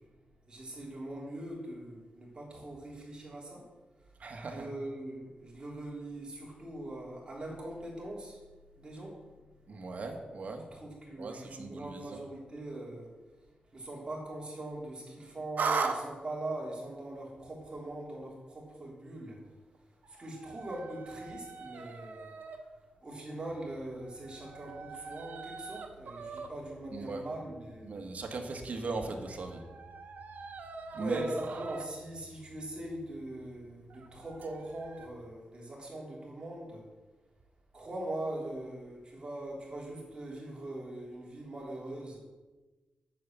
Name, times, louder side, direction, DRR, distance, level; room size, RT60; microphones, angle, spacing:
voice 1, 0.5-3.7 4.5-8.4 8.8-9.2 10.7-13.1 13.7-19.4 20.1-22.3 23.0-28.0 31.0-36.8 37.7-42.2, right 1 dB, 30° right, -3 dB, 3.5 m, -41 dB
voice 2, 4.2-4.7 9.7-10.6 11.2-12.0 26.9-27.2 27.8-29.6 30.9-31.3, right 3 dB, 55° right, 3 dB, 1.8 m, -38 dB
sound 1, 15.6-16.0 20.0-22.6 23.5-35.1, right 4 dB, 75° right, 1.1 m, -41 dB
9.3 x 7.2 x 7.6 m, 1.2 s
wide cardioid pair, 125°, 3 cm